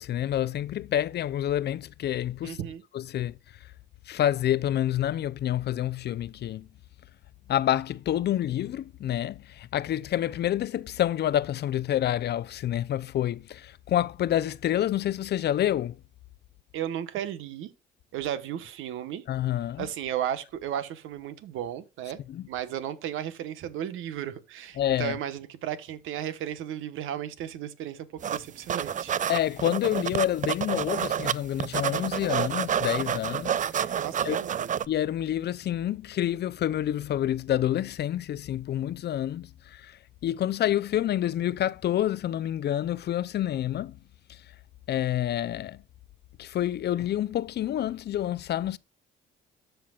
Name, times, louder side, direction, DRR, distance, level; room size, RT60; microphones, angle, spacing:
voice 1, 0.0-2.6 2.9-3.4 4.1-6.7 7.5-16.0 19.3-19.9 22.3-22.4 24.8-25.2 29.3-33.9 34.2-34.4 34.9-39.9 40.2-43.9 44.9-45.8 46.4-48.8, left 12 dB, 55° left, 0.5 m, -28 dB
voice 2, 2.4-2.8 16.7-17.7 18.1-19.2 19.8-22.2 22.5-29.1 34.0-34.7, right 10 dB, 90° right, 1.1 m, -34 dB
sound 1, 28.2-28.4 28.7-31.3 31.6-34.8, right 9 dB, 40° right, 0.4 m, -29 dB
13.0 x 5.7 x 2.3 m
cardioid pair, 90°, 20 cm